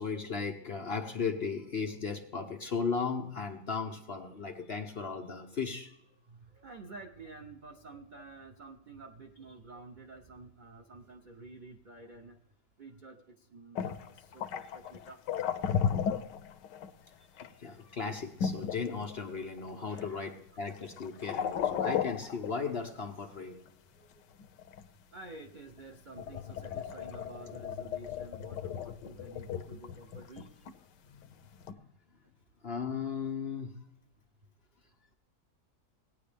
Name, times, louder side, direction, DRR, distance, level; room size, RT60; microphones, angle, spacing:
voice 1, 0.0-5.9 17.1-23.6 26.8-27.1 31.0-31.3 31.7-31.9 32.6-33.8, left 5 dB, 50° left, 4 dB, 0.8 m, -36 dB
voice 2, 6.3-12.4 12.8-15.4 19.9-20.3 21.1-21.2 24.0-24.1 25.1-30.4, right 2 dB, 65° right, 3 dB, 0.4 m, -50 dB
sound 1, 13.8-16.9 17.4-17.5 18.4-19.7 20.0-20.3 20.7-23.1 24.4-24.9 25.8-25.9 26.2-30.7 31.6-31.7, left 8 dB, 85° left, 1.3 m, -35 dB
18.5 x 9.5 x 3.4 m, 0.80 s
omnidirectional pair, 1.8 m